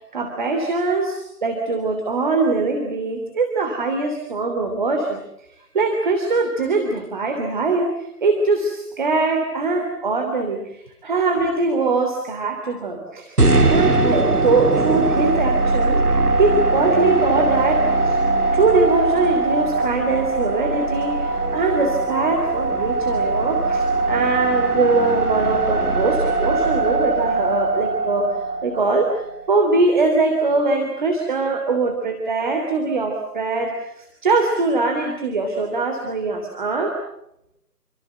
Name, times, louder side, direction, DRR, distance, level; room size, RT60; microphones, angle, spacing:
voice 1, 0.1-5.2 5.7-18.2 18.5-28.3 28.6-36.9, right 3 dB, 30° right, 3 dB, 3.2 m, -22 dB
sound 1, 13.4-29.5, right 3 dB, 70° right, 3.6 m, -20 dB
28.5 x 25.0 x 8.1 m, 0.80 s
figure-of-eight pair, 155°, 47 cm